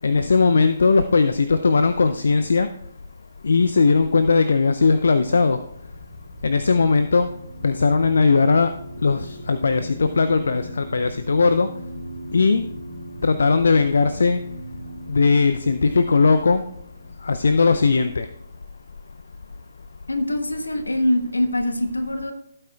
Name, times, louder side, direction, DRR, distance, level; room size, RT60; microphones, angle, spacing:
voice 1, 0.0-2.7 3.4-5.6 6.4-7.3 7.6-8.7 9.0-11.7 12.3-12.6 13.2-14.4 15.1-16.6 17.2-18.3, left 4 dB, 65° left, 10 dB, 0.5 m, -18 dB
sound 1, 5.2-18.4, right 1 dB, 85° right, 2.2 m, -39 dB
voice 2, 20.1-22.3, left 1 dB, 80° left, 7 dB, 1.2 m, -23 dB
16.0 x 8.7 x 2.3 m, 0.73 s
figure-of-eight pair, 135°, 0 cm